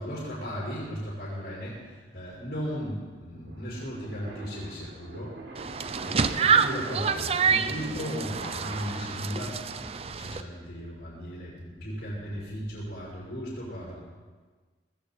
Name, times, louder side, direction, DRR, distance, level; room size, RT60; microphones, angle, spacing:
voice 1, 0.0-5.4 6.0-14.0, equal, 65° left, -7 dB, 6.1 m, -36 dB
sound 1, 1.7-9.3, right 2 dB, 90° right, 4.0 m, -44 dB
sound 2, 5.5-10.4, right 6 dB, 35° right, 0.5 m, -27 dB
20.0 x 15.5 x 4.4 m, 1.4 s
head